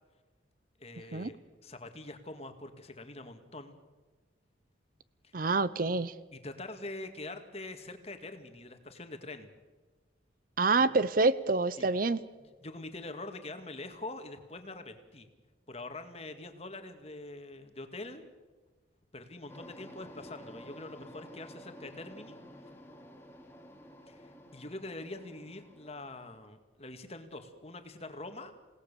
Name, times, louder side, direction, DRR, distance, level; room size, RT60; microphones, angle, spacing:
voice 1, 0.8-3.8 5.2-5.5 6.3-9.5 11.8-12.0 12.4-15.3 15.7-18.3 19.1-22.4 24.1-28.5, left 2 dB, 35° left, 7 dB, 2.1 m, -44 dB
voice 2, 5.3-6.1 10.6-12.2, right 3 dB, 50° right, 16 dB, 0.7 m, -27 dB
sound 1, 19.5-26.4, equal, 15° left, 2.5 m, -51 dB
28.5 x 18.0 x 7.0 m, 1.3 s
head